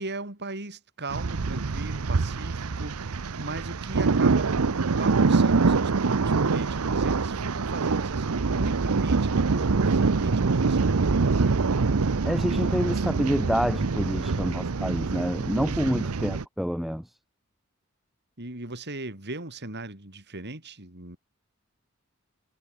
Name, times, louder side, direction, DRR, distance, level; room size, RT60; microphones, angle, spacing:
voice 1, 0.0-4.5 5.0-11.6 14.0-14.5 15.7-16.1 18.4-21.2, right 2 dB, 50° right, 5.1 m, -38 dB
sound 1, 1.1-16.4, right 4 dB, 80° right, 0.7 m, -25 dB
voice 2, 12.2-17.0, equal, ahead, 2.2 m, -28 dB
head